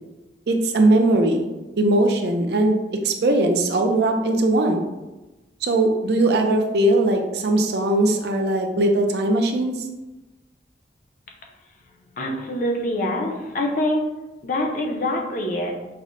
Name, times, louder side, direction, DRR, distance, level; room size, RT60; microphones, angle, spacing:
voice 1, 0.5-1.5 1.8-2.8 3.0-4.8 5.6-9.9, right 1 dB, 60° right, 4 dB, 0.4 m, -20 dB
voice 2, 12.2-14.0 14.4-15.9, left 1 dB, 45° left, 1 dB, 0.5 m, -25 dB
5.4 x 2.1 x 2.5 m, 1.1 s
head